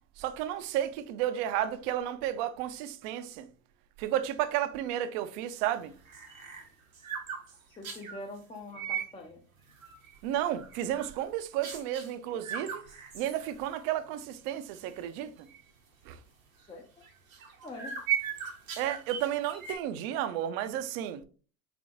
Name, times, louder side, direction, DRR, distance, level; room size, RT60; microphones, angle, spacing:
voice 1, 0.2-3.5 4.0-5.9 10.2-12.8 13.1-15.5 16.1-16.2 18.8-21.2, right 11 dB, 55° right, 0.5 m, -32 dB
sound 1, 5.8-8.2 8.7-9.1 9.6-10.2 10.5-11.2 11.6-12.1 12.4-13.9 14.2-14.3 14.7-15.0 15.5-15.6 17.0-19.8, right 8 dB, 85° right, 0.9 m, -38 dB
voice 2, 7.7-9.4 16.7-17.0 17.6-18.1, left 2 dB, 15° left, 0.5 m, -44 dB
3.3 x 3.3 x 2.5 m
hypercardioid pair, 70°, 40 cm